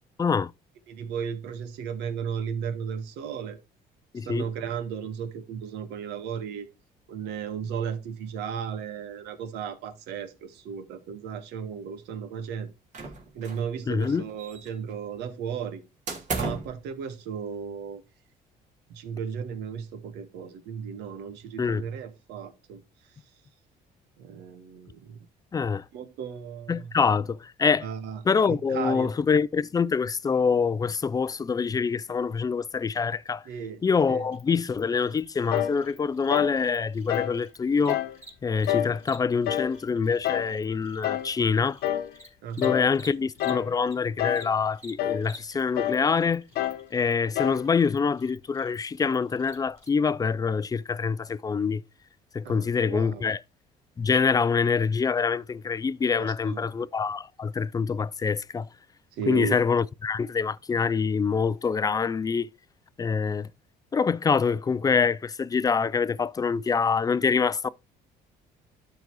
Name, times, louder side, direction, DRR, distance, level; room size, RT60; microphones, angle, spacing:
voice 1, 0.2-0.5 4.1-4.5 13.9-14.2 21.6-21.8 25.5-25.8 26.7-27.9 28.3-33.4 33.8-38.0 38.4-41.8 42.6-46.4 46.9-51.8 52.3-53.4 54.0-58.7 59.3-62.5 63.0-63.5 63.9-67.7, left 5 dB, 20° left, 0.4 m, -25 dB
voice 2, 0.9-3.6 4.2-6.7 7.1-12.7 13.3-15.8 16.3-18.0 18.9-22.8 24.2-25.2 25.9-26.9 27.8-28.2 28.5-29.1 33.4-33.8 34.1-34.2 42.4-42.8 52.4-53.3 56.2-56.7 59.1-59.6, right 7 dB, 85° right, 1.5 m, -35 dB
sound 1, 12.9-13.7 14.0-14.9 16.1-16.8, right 3 dB, 45° right, 2.8 m, -34 dB
Cricket, 34.3-44.0 44.3-49.9, equal, 15° right, 4.5 m, -51 dB
sound 2, 35.5-35.8 36.3-36.6 37.1-37.4 37.9-38.2 38.7-39.0 39.4-39.8 40.2-40.5 41.0-41.3 41.8-42.1 42.6-42.9 43.4-43.7 44.2-44.5 45.0-45.3 45.8-46.1 46.6-46.9 47.4-47.7, left 12 dB, 75° left, 0.9 m, -28 dB
12.0 x 4.0 x 4.7 m
cardioid pair, 110°, 17 cm